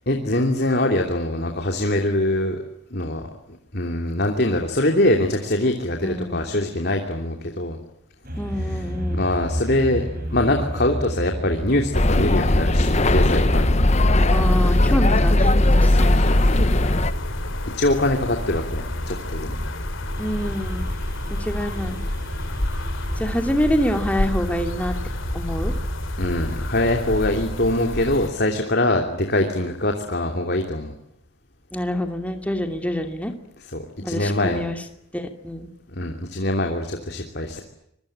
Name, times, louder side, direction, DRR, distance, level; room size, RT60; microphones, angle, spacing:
voice 1, 0.1-2.6 2.9-3.3 3.7-7.8 8.6-8.9 9.1-10.1 10.3-14.0 15.8-16.7 17.7-19.6 26.2-30.9 33.6-34.6 35.9-37.6, left 1 dB, 50° left, 3 dB, 3.0 m, -23 dB
voice 2, 6.0-6.4 8.3-9.2 14.3-16.3 20.2-20.9 21.3-22.0 23.2-24.9 25.3-25.7 31.7-33.3 34.0-34.8 35.1-35.7, equal, 5° left, 5 dB, 2.6 m, -26 dB
sound 1, 8.2-27.0, equal, 45° right, 6.0 m, -32 dB
sound 2, 11.9-17.1, left 1 dB, 30° left, 1.0 m, -18 dB
sound 3, 16.0-28.3, left 1 dB, 70° left, 3.0 m, -29 dB
26.0 x 23.5 x 8.8 m, 0.76 s
head